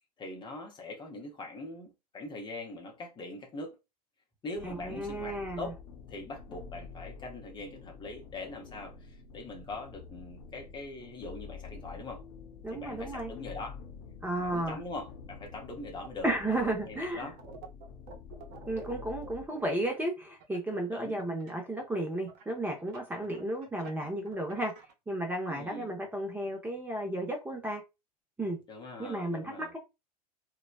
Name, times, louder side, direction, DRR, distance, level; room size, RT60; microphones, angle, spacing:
voice 1, 0.2-3.8 4.4-5.8 6.1-12.2 12.7-13.8 14.4-17.4 20.9-21.2 25.5-25.9 28.7-29.7, left 2 dB, 20° left, 0.7 m, -42 dB
sound 1, 4.5-19.5, left 6 dB, 55° left, 0.7 m, -48 dB
voice 2, 4.6-5.7 12.6-13.3 14.2-14.8 16.2-17.3 18.7-24.7 25.1-27.8 28.4-28.6 29.0-29.8, right 1 dB, 10° right, 0.7 m, -33 dB
sound 2, 16.0-16.8 17.1-21.5 22.3-24.9, right 6 dB, 45° right, 0.8 m, -49 dB
3.0 x 2.1 x 2.4 m
hypercardioid pair, 90°, 20 cm